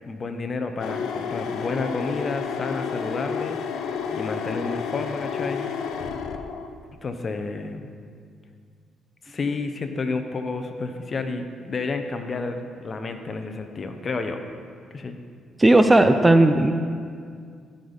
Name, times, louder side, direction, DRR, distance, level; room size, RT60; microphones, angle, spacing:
voice 1, 0.0-3.6 4.1-5.7 7.0-7.9 9.2-14.4 14.9-15.2, left 3 dB, 40° left, 7 dB, 0.7 m, -30 dB
sound 1, 0.8-6.7, left 6 dB, 80° left, 0.5 m, -30 dB
voice 2, 15.6-16.7, right 1 dB, 15° right, 8 dB, 0.4 m, -15 dB
14.0 x 5.1 x 4.0 m, 2.1 s
cardioid pair, 90°, 0 cm